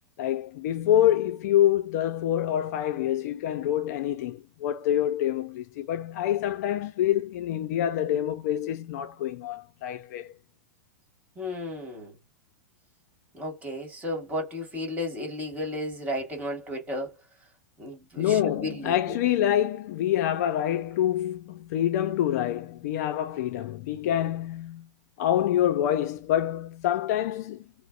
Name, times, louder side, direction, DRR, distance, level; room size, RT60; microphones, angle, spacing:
voice 1, 0.2-10.3 18.2-24.9 25.2-27.7, left 11 dB, 60° left, 0.4 m, -26 dB
voice 2, 11.3-12.1 13.3-17.1 17.8-19.2, left 1 dB, 15° right, 1.5 m, -34 dB
2.6 x 2.0 x 2.4 m
hypercardioid pair, 125°, 10 cm